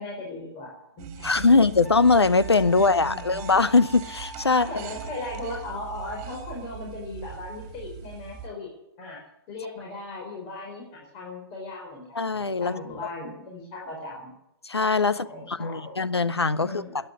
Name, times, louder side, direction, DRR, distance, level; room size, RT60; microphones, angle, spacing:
voice 1, 0.0-1.6 2.7-3.4 4.5-8.7 9.0-9.2 9.5-14.3 15.2-16.0 16.6-17.0, left 2 dB, 30° left, -1 dB, 4.8 m, -38 dB
sound 1, 1.0-8.5, right 7 dB, 30° right, 2.6 m, -41 dB
voice 2, 1.2-4.7 12.1-12.7 14.7-16.7, left 4 dB, 85° left, 14 dB, 0.9 m, -21 dB
Wind instrument woodwind instrument, 1.8-5.9, right 1 dB, ahead, 2.7 m, -45 dB
13.5 x 10.0 x 9.4 m, 0.81 s
figure-of-eight pair, 125°, 13 cm